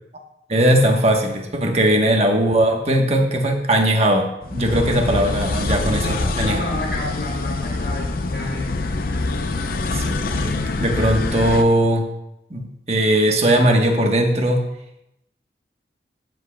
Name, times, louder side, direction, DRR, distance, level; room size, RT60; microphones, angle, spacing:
voice 1, 0.5-6.6 9.9-12.1 12.5-14.6, right 1 dB, 35° right, 3 dB, 1.2 m, -19 dB
sound 1, 4.4-11.6, left 3 dB, 55° left, 0.6 m, -25 dB
voice 2, 6.0-8.8, left 1 dB, 80° left, -4 dB, 2.6 m, -30 dB
15.0 x 7.6 x 2.3 m, 0.83 s
head